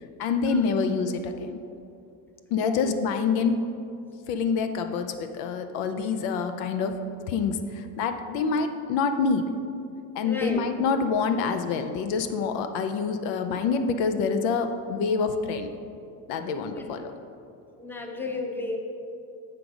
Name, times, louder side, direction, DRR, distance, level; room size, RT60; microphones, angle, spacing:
voice 1, 0.2-1.6 2.5-3.7 4.3-9.5 10.1-15.7 16.3-17.1, left 5 dB, 70° left, 8 dB, 0.6 m, -26 dB
voice 2, 2.5-2.9 10.2-10.7 16.6-16.8 17.8-18.8, left 2 dB, 5° left, 2 dB, 0.8 m, -34 dB
7.8 x 4.9 x 5.1 m, 2.6 s
supercardioid pair, 115°, 39 cm